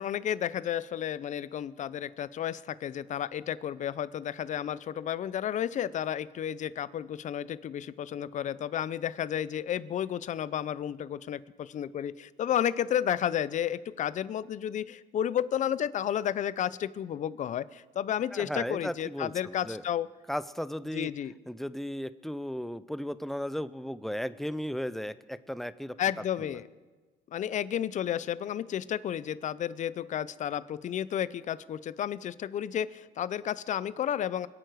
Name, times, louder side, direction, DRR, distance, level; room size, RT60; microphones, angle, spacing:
voice 1, 0.0-20.1 20.9-21.3 26.0-26.7 27.3-34.5, left 10 dB, 45° left, 17 dB, 0.6 m, -32 dB
voice 2, 18.3-19.8 20.3-21.1 21.5-26.0, equal, ahead, 14 dB, 0.5 m, -35 dB
26.5 x 9.0 x 4.7 m, 1.3 s
cardioid pair, 110°, 17 cm